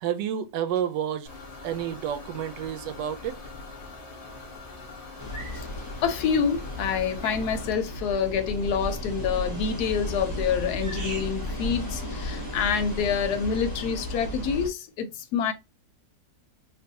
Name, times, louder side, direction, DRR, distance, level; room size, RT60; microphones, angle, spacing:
voice 1, 0.0-1.3 1.6-3.4, right 9 dB, 80° right, 1.2 m, -30 dB
sound 1, 1.3-7.7, left 3 dB, 45° left, 0.4 m, -43 dB
sound 2, 3.1-3.2 5.3-5.6 7.2-7.5 9.6-10.0 10.8-11.5 11.7-12.5, right 2 dB, 35° right, 0.9 m, -42 dB
sound 3, 5.2-14.7, left 1 dB, 15° left, 0.8 m, -34 dB
voice 2, 6.0-15.5, left 6 dB, 70° left, 1.1 m, -27 dB
3.7 x 2.5 x 2.7 m
omnidirectional pair, 1.9 m